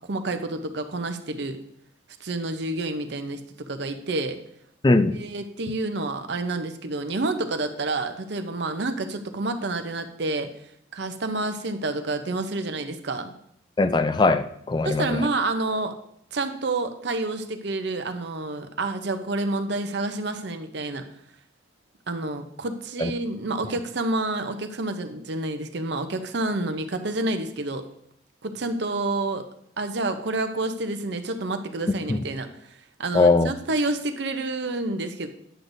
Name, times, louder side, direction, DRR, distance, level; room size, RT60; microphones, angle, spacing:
voice 1, 0.1-1.6 2.2-4.4 4.9-10.5 10.9-13.3 14.8-15.9 16.3-21.0 22.1-27.9 28.4-29.5 29.8-32.5 33.0-35.3, right 2 dB, 60° right, 8 dB, 0.7 m, -29 dB
voice 2, 4.8-5.2 13.8-15.2 23.0-23.1 32.1-32.2 33.1-33.5, left 3 dB, 20° left, 11 dB, 0.3 m, -20 dB
10.0 x 7.8 x 2.6 m, 0.70 s
head